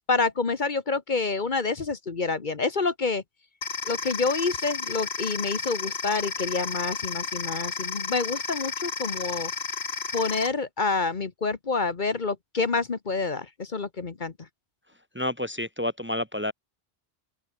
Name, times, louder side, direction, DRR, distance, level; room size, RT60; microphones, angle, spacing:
voice 1, 0.0-3.2 3.9-9.5 10.1-14.3, left 4 dB, 50° left, 1.3 m, -28 dB
sound 1, 3.6-10.5, left 5 dB, 80° left, 1.9 m, -32 dB
voice 2, 15.1-16.5, left 1 dB, 10° right, 1.2 m, -29 dB
open air
omnidirectional pair, 1.1 m